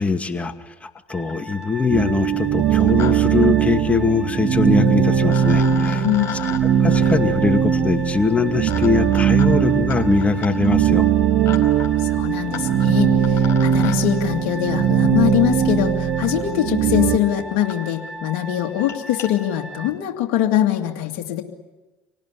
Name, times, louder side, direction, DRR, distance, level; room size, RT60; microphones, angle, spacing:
voice 1, 0.0-6.1 6.8-11.1, left 4 dB, 20° left, 7 dB, 2.3 m, -22 dB
sound 1, 1.0-1.1 1.3-1.7 2.6-3.1 3.4-3.5 4.8-4.9 5.3-14.0 15.3-15.4 16.2-16.3 17.0-17.1 17.3-17.4 17.7-17.8 18.1-18.3 18.7-19.3, left 10 dB, 50° left, 5.4 m, -37 dB
sound 2, 1.1-19.9, right 1 dB, ahead, 2.8 m, -38 dB
sound 3, 1.9-17.2, right 8 dB, 65° right, 1.7 m, -19 dB
voice 2, 6.0-6.3 12.0-21.4, left 12 dB, 70° left, 1 dB, 2.3 m, -22 dB
26.0 x 18.5 x 9.9 m, 1.2 s
hypercardioid pair, 75°, 6 cm